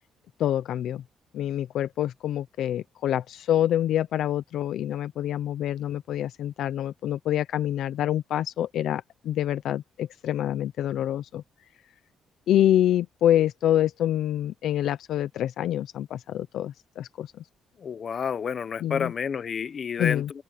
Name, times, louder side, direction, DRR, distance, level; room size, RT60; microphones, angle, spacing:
voice 1, 0.4-1.0 1.3-11.4 12.5-17.3 18.8-19.1 20.0-20.3, left 11 dB, 75° left, 0.7 m, -26 dB
voice 2, 17.8-20.2, left 7 dB, 50° left, 1.2 m, -29 dB
open air
cardioid pair, 90°, 0 cm